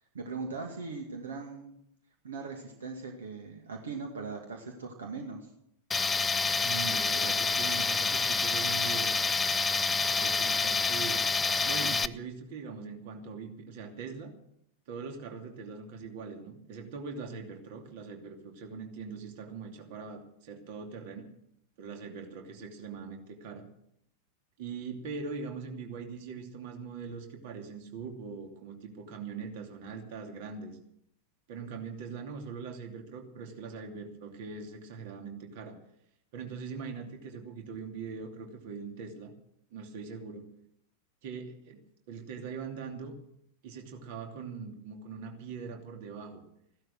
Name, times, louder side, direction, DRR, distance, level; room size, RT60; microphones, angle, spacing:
voice 1, 0.1-1.7 2.2-5.5, right 4 dB, 65° right, 3 dB, 2.2 m, -39 dB
Tools, 5.9-12.1, left 4 dB, 15° left, 0.6 m, -28 dB
voice 2, 6.6-9.2 10.1-11.2 11.6-14.3 14.9-21.3 21.8-23.6 24.6-30.8 31.5-35.8 36.3-39.3 39.7-40.4 41.2-41.8 42.1-43.1 43.6-46.4, right 5 dB, 50° right, 4 dB, 2.8 m, -41 dB
16.0 x 12.0 x 6.6 m, 0.75 s
figure-of-eight pair, 90°, 0 cm